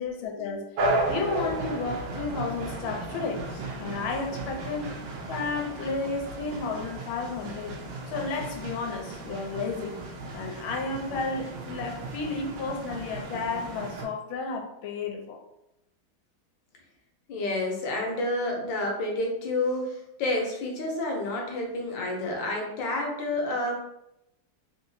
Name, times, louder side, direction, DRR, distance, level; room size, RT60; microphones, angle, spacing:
voice 1, 0.0-4.9 5.3-7.8 8.1-10.0 10.3-15.4, left 4 dB, 90° left, 2 dB, 1.5 m, -32 dB
sound 1, 0.8-14.1, right 2 dB, 75° right, 1.3 m, -34 dB
voice 2, 17.3-23.7, left 2 dB, 70° left, 0 dB, 1.4 m, -29 dB
3.6 x 2.8 x 2.6 m, 0.86 s
omnidirectional pair, 2.2 m